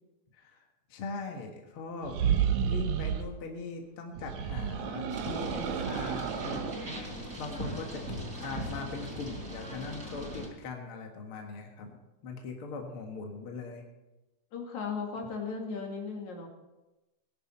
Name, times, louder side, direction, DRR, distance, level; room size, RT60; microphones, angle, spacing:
voice 1, 0.9-2.2 2.6-7.1 7.4-8.0 8.4-12.0 12.2-13.9, left 4 dB, 50° left, 2 dB, 2.3 m, -40 dB
sound 1, 2.0-3.3 4.2-6.8, right 8 dB, 75° right, 2.2 m, -31 dB
sound 2, 5.1-10.5, equal, 25° right, 3.9 m, -39 dB
voice 2, 14.5-16.5, left 5 dB, 75° left, 1 dB, 3.5 m, -36 dB
19.0 x 10.5 x 4.4 m, 1.0 s
omnidirectional pair, 3.4 m